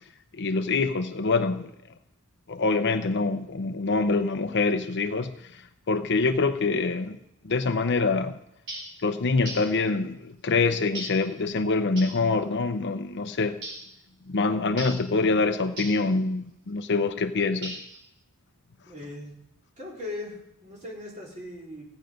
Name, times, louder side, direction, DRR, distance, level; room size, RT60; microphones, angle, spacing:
voice 1, 0.4-1.7 2.5-5.3 5.9-7.2 7.4-8.4 9.0-13.6 14.3-17.8, left 3 dB, 50° left, 0.7 m, -25 dB
sound 1, 8.7-9.0 9.5-9.8 11.0-11.3 12.0-12.2 13.6-13.9 14.8-15.1 15.8-16.1 17.6-18.0, right 1 dB, 55° right, 4.5 m, -38 dB
voice 2, 18.9-19.3 19.8-21.9, left 2 dB, 35° right, 4.1 m, -39 dB
16.5 x 9.1 x 5.3 m
head